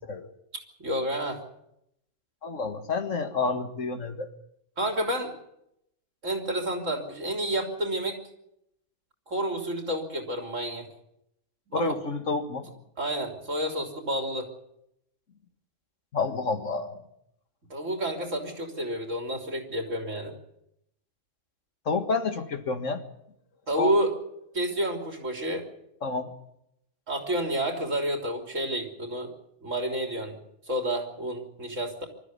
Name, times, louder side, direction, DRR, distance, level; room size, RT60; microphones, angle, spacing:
voice 1, 0.5-1.4 4.8-5.3 6.2-8.2 9.3-10.9 11.7-12.0 13.0-14.5 17.7-20.3 23.7-24.1 24.5-25.6 27.1-29.3 29.6-30.4 30.7-32.1, right 1 dB, 85° right, 3 dB, 3.9 m, -30 dB
voice 2, 2.4-4.3 11.7-12.7 16.1-17.0 21.9-23.0 23.8-23.9 26.0-26.3, left 4 dB, 80° left, 7 dB, 2.1 m, -29 dB
24.5 x 13.5 x 9.5 m, 0.80 s
omnidirectional pair, 1.3 m